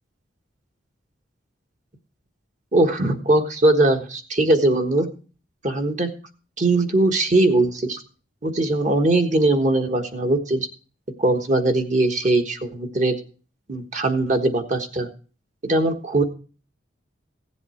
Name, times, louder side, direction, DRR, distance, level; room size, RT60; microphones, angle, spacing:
voice 1, 2.7-5.1 5.6-6.1 6.6-8.0 8.4-10.7 11.2-13.2 13.7-15.1 15.6-16.2, right 2 dB, 40° right, 5 dB, 1.4 m, -20 dB
16.0 x 7.9 x 4.4 m, 0.38 s
head